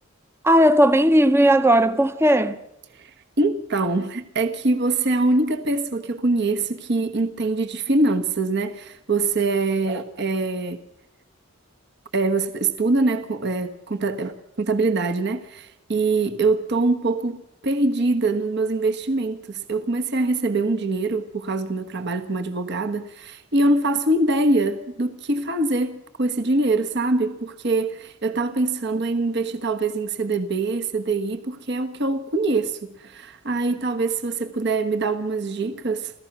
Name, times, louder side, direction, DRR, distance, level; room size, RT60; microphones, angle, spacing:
voice 1, 0.4-2.6, right 1 dB, 10° right, 0.7 m, -16 dB
voice 2, 3.4-10.8 12.1-36.1, right 2 dB, 55° right, 1.2 m, -24 dB
28.5 x 15.0 x 6.1 m
head